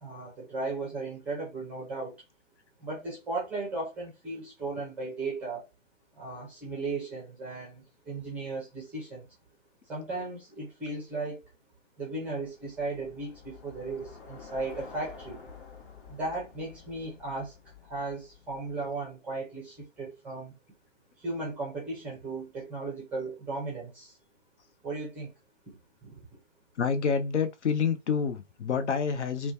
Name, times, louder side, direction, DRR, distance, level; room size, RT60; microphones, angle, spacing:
voice 1, 0.0-2.1 2.8-5.6 6.2-9.3 9.9-11.4 12.0-15.4 16.1-17.5 17.9-20.5 21.2-24.1 24.8-25.3 26.0-26.2, right 3 dB, 5° right, 0.5 m, -36 dB
Bicycle, 12.4-18.9, left 5 dB, 45° left, 1.1 m, -49 dB
voice 2, 26.8-29.5, left 6 dB, 60° left, 0.6 m, -28 dB
3.0 x 2.2 x 2.6 m
figure-of-eight pair, 125°, 39 cm